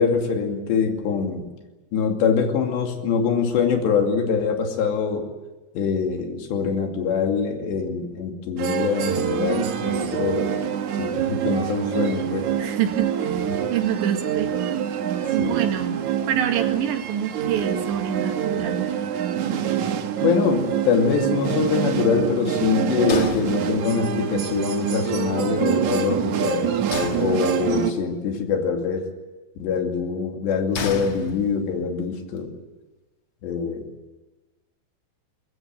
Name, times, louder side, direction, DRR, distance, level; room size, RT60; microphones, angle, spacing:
voice 1, 0.0-1.5 1.9-5.3 5.7-10.6 11.0-12.5 15.4-15.6 19.8-19.9 20.2-29.1 29.6-32.5 33.4-33.9, left 6 dB, 80° left, 3 dB, 4.7 m, -24 dB
sound 1, 8.6-27.9, right 9 dB, 65° right, 2.0 m, -25 dB
voice 2, 12.6-14.8 15.3-18.9, right 9 dB, 90° right, 5 dB, 4.2 m, -27 dB
sound 2, 23.1-24.2 26.9-27.9 30.7-31.9, left 5 dB, 50° left, 1.6 m, -32 dB
23.0 x 21.0 x 9.1 m, 1.2 s
omnidirectional pair, 5.0 m